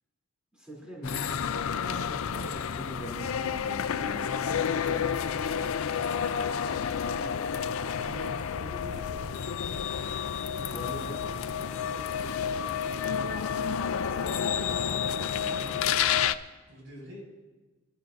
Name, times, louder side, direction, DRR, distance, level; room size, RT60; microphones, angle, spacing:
voice 1, 0.5-5.7 7.0-7.7 10.6-11.4 15.4-15.5, right 1 dB, 5° right, -5 dB, 3.1 m, -44 dB
sound 1, 1.0-16.4, left 7 dB, 70° left, 0.5 m, -30 dB
voice 2, 7.7-9.5 10.8-12.7 13.8-14.8 15.1-16.0 16.7-17.3, equal, 65° right, -2 dB, 5.6 m, -46 dB
26.0 x 12.0 x 2.6 m, 1.2 s
head